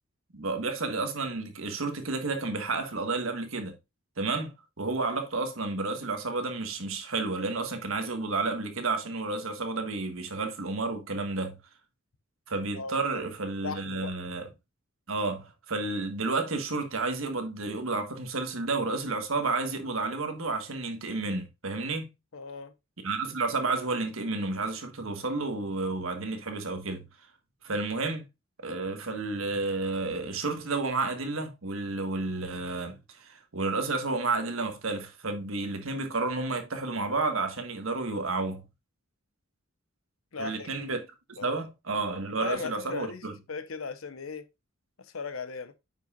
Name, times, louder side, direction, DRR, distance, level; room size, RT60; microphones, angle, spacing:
voice 1, 0.3-3.7 4.2-11.6 12.5-14.5 15.1-22.1 23.0-27.0 27.6-28.3 28.6-38.6 40.4-43.3, right 3 dB, 80° right, 1.5 m, -31 dB
voice 2, 13.6-14.1 22.3-22.7 40.3-40.7 41.4-41.6 42.4-44.5 45.0-45.7, left 4 dB, 75° left, 0.8 m, -37 dB
9.1 x 5.6 x 2.4 m
head